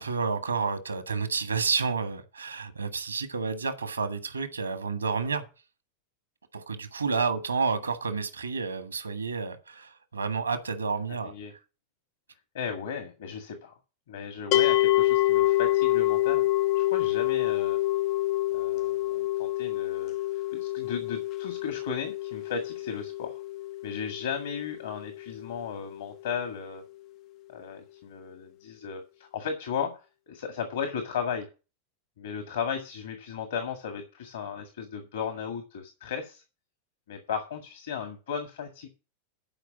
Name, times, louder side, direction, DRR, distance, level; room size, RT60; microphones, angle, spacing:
voice 1, 0.0-5.4 6.5-11.3, right 5 dB, 75° right, 1.5 m, -30 dB
voice 2, 11.1-11.5 12.5-13.7 14.1-16.4 16.8-17.8 18.5-20.2 20.5-23.4 23.8-26.9 27.5-31.5 32.2-36.4 37.1-38.9, left 6 dB, 60° left, 1.8 m, -35 dB
sound 1, 14.5-25.7, left 16 dB, 40° left, 0.4 m, -27 dB
12.0 x 5.1 x 7.1 m
figure-of-eight pair, 90°, 0 cm